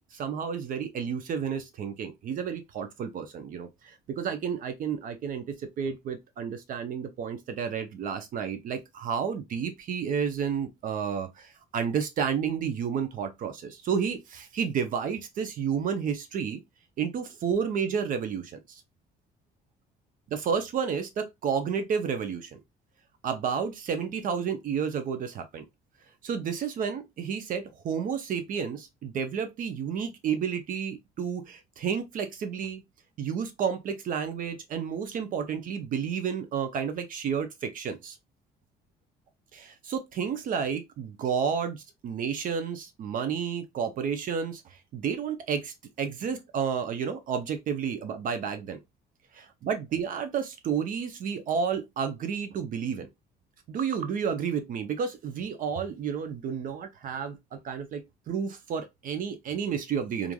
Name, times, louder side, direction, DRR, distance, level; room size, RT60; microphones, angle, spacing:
voice 1, 0.0-5.4 5.8-16.6 17.0-18.6 20.3-22.6 23.2-25.6 26.2-32.8 33.2-38.1 39.5-41.8 42.0-44.6 44.9-48.8 49.3-53.1 53.7-58.0 58.3-60.3, right 7 dB, 55° right, 0.5 m, -31 dB
3.1 x 2.4 x 2.2 m
cardioid pair, 110°, 17 cm